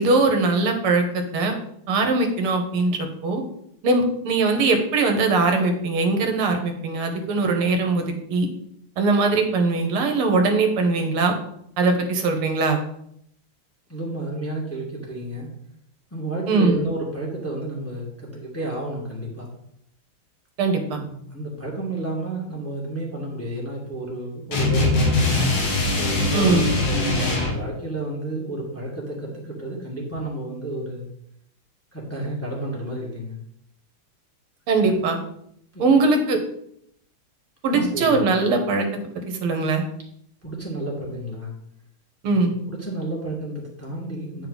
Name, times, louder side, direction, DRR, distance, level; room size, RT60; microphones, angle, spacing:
voice 1, 0.0-1.5 1.9-3.4 3.8-8.5 9.0-11.3 11.8-12.8 16.5-16.8 20.6-21.0 26.3-26.7 34.7-35.2 35.8-36.4 37.6-38.9 39.4-39.8 42.2-42.6, right 3 dB, 80° right, 4 dB, 2.0 m, -21 dB
voice 2, 13.9-15.5 16.1-19.5 20.8-25.4 26.0-31.1 31.9-33.4 34.8-34.9 35.7-36.0 37.7-38.2 40.4-41.5 42.3-44.5, right 1 dB, 5° left, -3 dB, 1.5 m, -31 dB
sound 1, 24.5-27.6, left 2 dB, 60° left, 2.1 m, -21 dB
8.8 x 5.5 x 4.0 m, 0.71 s
omnidirectional pair, 2.3 m